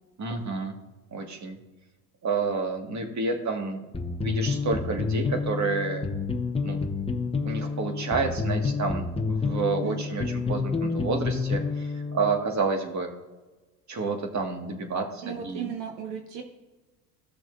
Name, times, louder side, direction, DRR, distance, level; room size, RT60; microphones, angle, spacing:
voice 1, 0.2-0.8 1.1-1.6 2.2-3.8 4.2-6.1 6.6-6.8 7.4-13.1 13.9-15.7, right 4 dB, 35° right, 3 dB, 2.0 m, -29 dB
sound 1, 3.9-12.4, left 4 dB, 10° left, 1.0 m, -29 dB
voice 2, 15.2-16.4, right 8 dB, 60° right, 3 dB, 1.4 m, -35 dB
16.5 x 6.1 x 2.7 m, 1.2 s
hypercardioid pair, 75°, 49 cm